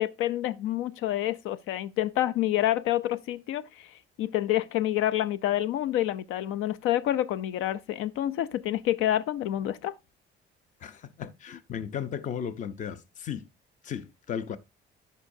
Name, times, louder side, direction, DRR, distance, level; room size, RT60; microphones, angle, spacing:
voice 1, 0.0-3.9 4.2-9.9, left 13 dB, 90° left, 0.5 m, -28 dB
voice 2, 10.8-13.5 13.8-14.6, left 8 dB, 40° left, 0.6 m, -35 dB
14.5 x 5.5 x 2.7 m
cardioid pair, 170°, 20 cm